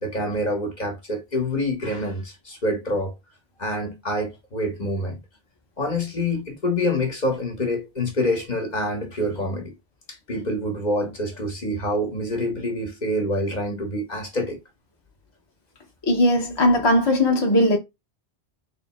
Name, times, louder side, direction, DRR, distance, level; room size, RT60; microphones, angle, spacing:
voice 1, 0.0-3.2 3.6-5.2 5.8-9.7 10.1-14.6, left 1 dB, 45° left, 1.1 m, -26 dB
voice 2, 16.1-17.8, left 1 dB, 25° left, 0.9 m, -18 dB
3.5 x 2.8 x 4.1 m
omnidirectional pair, 1.1 m